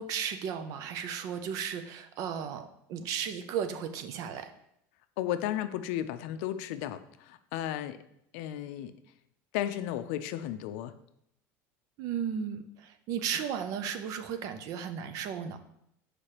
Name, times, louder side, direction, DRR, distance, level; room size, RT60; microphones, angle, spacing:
voice 1, 0.0-4.5 12.0-15.6, right 8 dB, 55° right, 10 dB, 0.5 m, -35 dB
voice 2, 5.2-8.0 8.3-8.9 9.5-11.0, left 12 dB, 80° left, 11 dB, 0.4 m, -34 dB
6.5 x 4.9 x 2.9 m, 0.75 s
cardioid pair, 145°, 7 cm